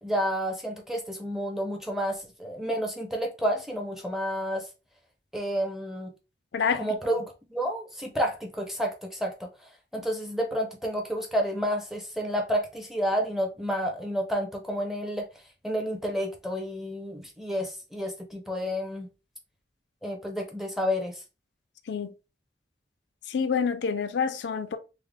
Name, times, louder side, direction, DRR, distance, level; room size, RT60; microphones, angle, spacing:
voice 1, 0.0-4.7 5.3-6.1 6.8-9.5 9.9-15.3 15.6-19.1 20.0-21.2, equal, ahead, 0.5 m, -30 dB
voice 2, 6.5-7.0 21.9-22.1 23.3-24.8, left 6 dB, 85° left, 0.4 m, -27 dB
3.6 x 2.1 x 3.2 m
head